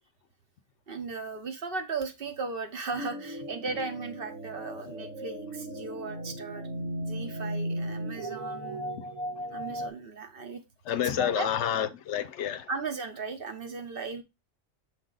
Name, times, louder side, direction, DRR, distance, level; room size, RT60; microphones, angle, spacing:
voice 1, 0.9-6.6 7.0-8.9 9.5-10.6 10.9-11.5 12.7-14.2, right 4 dB, 50° right, 1.0 m, -36 dB
sound 1, 3.0-9.9, right 1 dB, 80° right, 1.9 m, -36 dB
voice 2, 10.9-12.7, left 10 dB, 75° left, 0.8 m, -29 dB
6.5 x 3.8 x 3.8 m
omnidirectional pair, 1.3 m